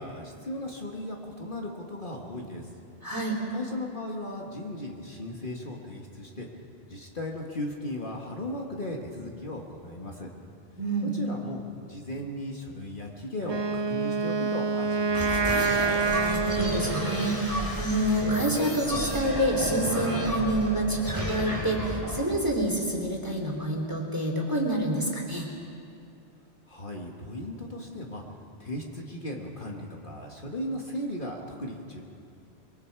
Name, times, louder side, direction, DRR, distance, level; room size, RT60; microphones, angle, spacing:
voice 1, 0.0-2.7 3.5-6.5 6.9-10.3 11.0-11.6 11.9-15.5 26.7-28.2 28.6-32.0, left 1 dB, 45° left, 0 dB, 1.8 m, -36 dB
voice 2, 3.0-3.4 10.8-11.1 16.1-25.5, right 1 dB, 15° right, 0 dB, 3.0 m, -28 dB
Wind instrument woodwind instrument, 13.4-17.6, right 4 dB, 40° right, 0.4 m, -27 dB
sound 1, 15.1-23.3, equal, 15° left, 3.4 m, -32 dB
25.0 x 23.0 x 4.7 m, 2.5 s
omnidirectional pair, 1.2 m